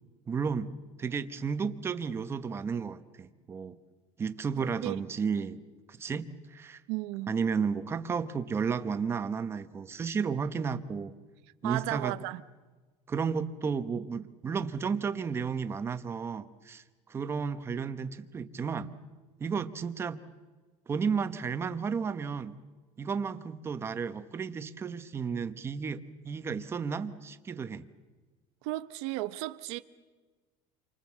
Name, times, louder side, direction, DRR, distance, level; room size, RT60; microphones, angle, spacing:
voice 1, 0.3-0.7 1.0-3.8 4.2-5.6 5.9-6.8 7.3-11.1 11.6-12.1 13.1-16.8 17.1-18.9 19.4-20.2 20.9-22.6 23.0-27.8, right 6 dB, 20° right, 0.9 m, -33 dB
voice 2, 4.6-5.0 6.9-7.4 11.6-12.4 28.6-29.8, right 18 dB, 85° right, 0.9 m, -34 dB
29.0 x 24.5 x 7.4 m
cardioid pair, 175°, 14 cm